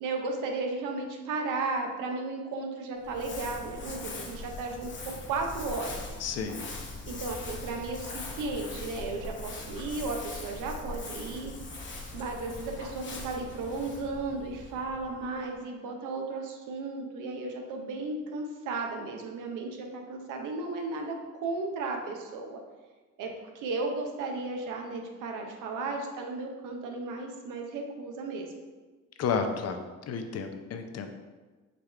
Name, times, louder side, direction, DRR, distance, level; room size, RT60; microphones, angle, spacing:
voice 1, 0.0-6.0 7.1-11.5 12.1-21.1 21.4-22.6 23.2-23.3 23.5-28.5, right 3 dB, 90° right, 2 dB, 0.7 m, -34 dB
Crumpling crinkling, 3.0-15.5, left 3 dB, 40° left, 1.0 m, -41 dB
voice 2, 6.2-6.6 29.2-29.8 30.1-31.1, left 5 dB, 55° left, 6 dB, 0.6 m, -31 dB
5.1 x 2.4 x 4.3 m, 1.3 s
cardioid pair, 90°, 30 cm